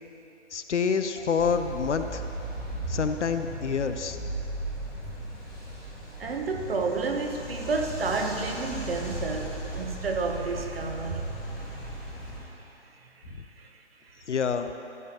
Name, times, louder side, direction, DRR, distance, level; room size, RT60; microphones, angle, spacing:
voice 1, 0.5-2.2 2.9-4.2 14.3-14.7, left 6 dB, 70° left, 8 dB, 0.6 m, -27 dB
sound 1, 1.4-12.4, right 1 dB, ahead, 1.0 m, -37 dB
voice 2, 6.2-11.2 12.4-12.5 13.0-13.2 13.6-14.2, right 4 dB, 50° right, 4 dB, 1.0 m, -31 dB
14.0 x 7.9 x 3.0 m, 3.0 s
figure-of-eight pair, 150°, 36 cm